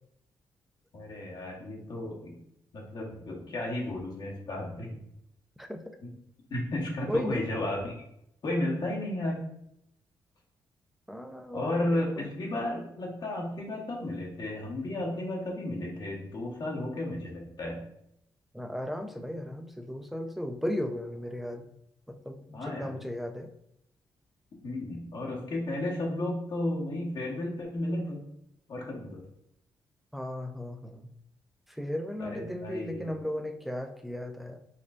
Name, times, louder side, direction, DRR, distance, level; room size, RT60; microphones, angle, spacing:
voice 1, 0.9-2.4 2.7-5.0 6.0-6.1 6.5-7.9 8.4-9.4 11.5-17.8 22.5-22.9 24.6-28.2 28.7-29.2 32.2-33.1, left 1 dB, 60° left, -3 dB, 1.2 m, -33 dB
voice 2, 7.1-7.4 11.1-11.6 11.9-12.3 18.5-21.7 22.1-23.5 30.1-31.1 31.7-34.6, left 1 dB, ahead, 6 dB, 0.4 m, -35 dB
4.3 x 2.4 x 2.5 m, 0.76 s
cardioid pair, 70°, 8 cm